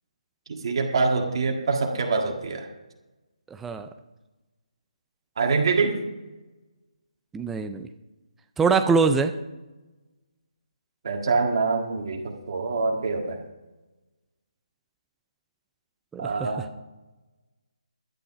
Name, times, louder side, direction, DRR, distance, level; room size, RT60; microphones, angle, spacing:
voice 1, 0.5-2.7 5.4-6.0 11.0-13.4 16.2-16.6, right 4 dB, 45° right, 2 dB, 1.8 m, -25 dB
voice 2, 3.5-3.9 7.3-7.9 8.6-9.3 16.1-16.7, right 4 dB, 5° right, 8 dB, 0.3 m, -23 dB
11.5 x 9.8 x 5.7 m, 1.1 s
hypercardioid pair, 165°, 4 cm